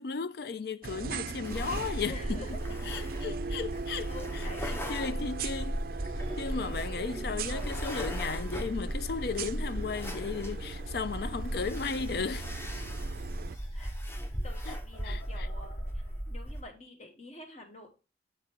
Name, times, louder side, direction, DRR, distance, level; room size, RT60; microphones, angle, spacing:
voice 1, 0.0-2.6 2.9-5.8 6.4-12.5 14.7-14.8 15.0-15.5, left 5 dB, 60° left, 0.4 m, -35 dB
sound 1, 0.8-13.6, right 5 dB, 55° right, 0.4 m, -40 dB
sound 2, 1.4-16.6, equal, 15° left, 0.9 m, -37 dB
voice 2, 2.1-2.6 2.9-3.1 4.0-5.1 12.8-13.0 13.7-13.9 14.4-15.8 16.3-18.0, left 2 dB, 40° left, 1.4 m, -47 dB
sound 3, 2.9-16.7, equal, 90° left, 4.3 m, -55 dB
7.5 x 3.8 x 4.4 m
head